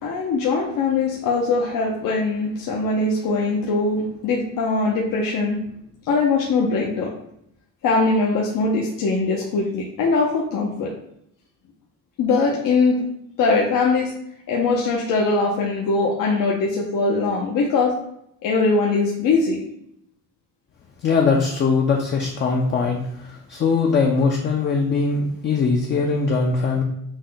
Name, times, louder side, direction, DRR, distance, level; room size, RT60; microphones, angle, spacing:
voice 1, 0.0-5.6 6.1-7.1 7.8-10.9 12.2-13.0 13.4-14.1 14.5-18.0 18.4-19.6, left 3 dB, 70° left, -2 dB, 0.8 m, -21 dB
voice 2, 21.0-26.8, left 4 dB, 35° left, 1 dB, 0.4 m, -21 dB
6.1 x 2.2 x 3.9 m, 0.76 s
cardioid pair, 170°, 33 cm